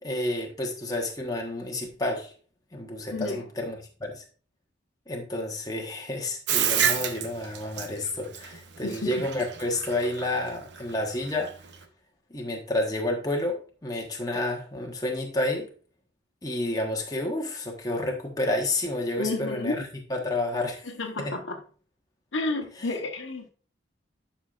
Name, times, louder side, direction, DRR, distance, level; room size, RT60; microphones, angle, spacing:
voice 1, 0.0-2.3 2.7-4.2 5.1-11.6 12.3-15.7 16.4-20.9 21.2-21.3 22.8-23.0, left 1 dB, 20° left, 1.2 m, -30 dB
voice 2, 3.1-3.4 8.8-9.3 19.2-19.8 20.8-21.6 22.3-23.5, left 2 dB, 80° left, 1.1 m, -31 dB
Bathtub (filling or washing), 6.5-11.8, right 8 dB, 65° right, 0.8 m, -29 dB
11.0 x 5.6 x 2.5 m
head